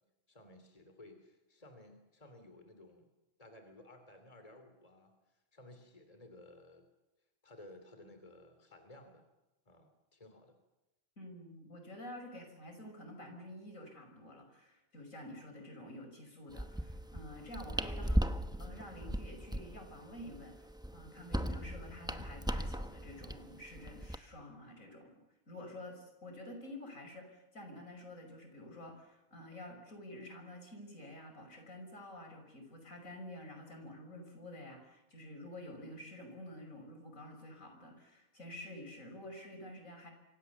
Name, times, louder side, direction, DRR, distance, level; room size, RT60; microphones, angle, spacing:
voice 1, 0.3-3.1 3.4-6.8 7.4-9.3 9.7-10.6, left 1 dB, 25° left, 7 dB, 3.0 m, -56 dB
voice 2, 11.2-18.2 18.6-20.7 20.9-25.1 25.5-40.1, left 1 dB, 75° left, 4 dB, 6.1 m, -49 dB
Kitchen Stove, 16.5-24.2, equal, 5° right, 0.8 m, -38 dB
27.5 x 25.0 x 7.1 m, 1.0 s
omnidirectional pair, 1.4 m